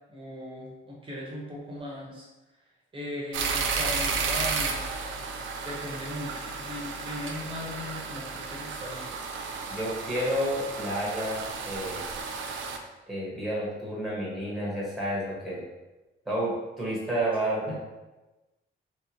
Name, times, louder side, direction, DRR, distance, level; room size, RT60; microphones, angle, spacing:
voice 1, 0.1-2.3 2.9-4.8 5.6-9.1, left 1 dB, 25° right, -3 dB, 0.8 m, -38 dB
sound 1, 3.3-12.8, right 5 dB, 75° right, 0.4 m, -33 dB
voice 2, 9.7-12.0 13.1-15.6 16.3-17.8, right 1 dB, ahead, -7 dB, 1.0 m, -30 dB
3.1 x 2.8 x 2.9 m, 1.1 s
wide cardioid pair, 145°, 20 cm